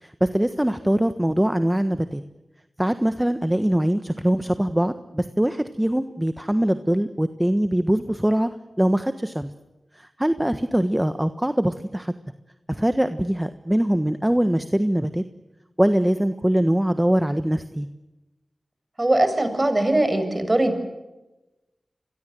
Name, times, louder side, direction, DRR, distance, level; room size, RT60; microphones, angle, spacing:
voice 1, 0.0-2.2 2.8-8.5 8.8-9.5 9.9-12.1 12.7-15.2 15.8-17.9, right 1 dB, 10° right, 10 dB, 1.4 m, -22 dB
voice 2, 19.0-20.9, right 1 dB, 30° right, 9 dB, 6.7 m, -21 dB
29.5 x 22.5 x 7.8 m, 1.0 s
cardioid pair, 45°, 0 cm